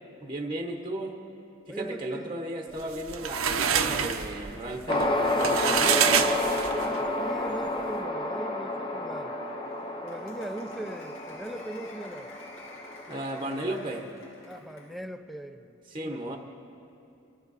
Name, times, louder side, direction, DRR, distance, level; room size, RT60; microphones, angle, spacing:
voice 1, 0.2-1.2 1.7-6.2 13.1-14.1 15.9-16.4, right 1 dB, 25° right, 2 dB, 1.0 m, -35 dB
voice 2, 1.7-2.3 2.7-2.9 6.6-9.4 10.0-12.3 14.5-16.4, right 1 dB, ahead, 8 dB, 0.5 m, -40 dB
sound 1, 2.8-7.0, right 7 dB, 80° right, 0.8 m, -27 dB
sound 2, 4.9-13.4, left 1 dB, 25° left, 0.9 m, -30 dB
Applause, 9.2-15.0, left 2 dB, 65° left, 2.3 m, -50 dB
25.5 x 13.0 x 4.1 m, 2.7 s
head